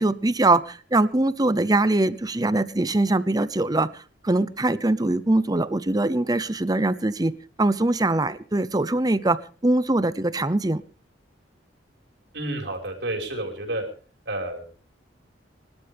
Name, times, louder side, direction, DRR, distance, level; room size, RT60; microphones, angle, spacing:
voice 1, 0.0-3.9 4.2-7.3 7.6-9.4 9.6-10.8, right 2 dB, 20° right, 16 dB, 0.7 m, -22 dB
voice 2, 12.3-13.8 14.2-14.7, right 1 dB, 65° right, 3 dB, 5.1 m, -30 dB
26.0 x 12.5 x 3.5 m, 0.38 s
head